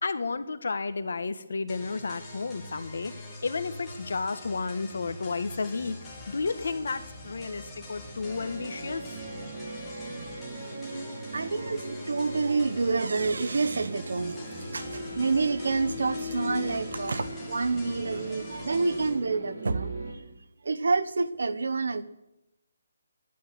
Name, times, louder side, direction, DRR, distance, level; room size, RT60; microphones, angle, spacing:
voice 1, 0.0-6.0 6.3-9.2, left 4 dB, 65° left, 1.3 m, -32 dB
sound 1, 1.7-19.1, left 1 dB, 10° left, 2.5 m, -44 dB
sound 2, 8.2-20.1, equal, 35° right, 5.0 m, -39 dB
voice 2, 11.3-20.2 20.6-22.0, right 4 dB, 75° right, 1.1 m, -28 dB
12.0 x 11.5 x 7.9 m
hypercardioid pair, 175°, 0 cm